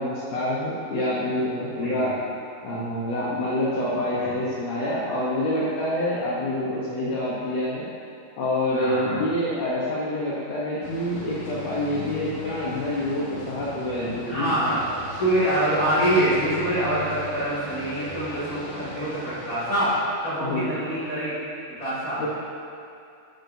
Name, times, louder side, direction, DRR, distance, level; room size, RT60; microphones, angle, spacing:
voice 1, 0.0-2.1 2.6-7.9 8.4-14.5 20.4-20.8 22.2-22.3, left 1 dB, 75° left, -7 dB, 1.5 m, -27 dB
voice 2, 1.8-2.2 4.1-4.4 8.7-9.3 14.3-14.8 15.1-21.3 21.8-22.2, right 1 dB, 30° left, -12 dB, 2.0 m, -25 dB
sound 1, 10.8-19.9, left 3 dB, 55° left, 1.5 m, -38 dB
11.0 x 8.1 x 2.7 m, 2.5 s
omnidirectional pair, 4.4 m